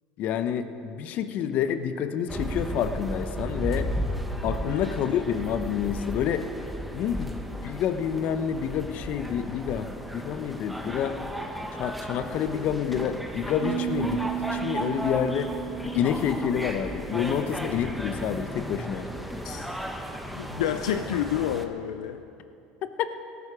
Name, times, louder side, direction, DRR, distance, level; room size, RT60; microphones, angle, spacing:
voice 1, 0.2-3.9 4.4-6.5 6.9-11.1 11.8-15.5 15.8-19.1 23.0-23.1, left 8 dB, 55° left, 10 dB, 1.0 m, -28 dB
sound 1, 2.3-21.7, equal, ahead, 1.5 m, -35 dB
voice 2, 4.6-4.9 13.7-13.8 19.4-19.8 20.3-22.2, left 10 dB, 85° left, 8 dB, 0.5 m, -29 dB
sound 2, 13.6-18.5, right 10 dB, 35° right, 1.7 m, -35 dB
18.0 x 13.5 x 5.0 m, 2.7 s
hypercardioid pair, 85°, 3 cm